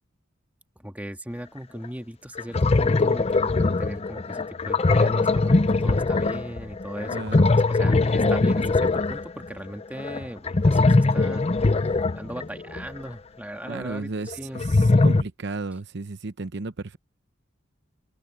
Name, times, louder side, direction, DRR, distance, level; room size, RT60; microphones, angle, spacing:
voice 1, 0.8-11.5 12.1-14.6 14.9-15.0, equal, 10° right, 1.9 m, -38 dB
sound 1, 1.8-1.9 2.4-13.0 14.3-15.2, left 3 dB, 30° left, 0.6 m, -21 dB
voice 2, 7.1-7.5 13.7-17.0, right 3 dB, 60° right, 0.8 m, -34 dB
open air
head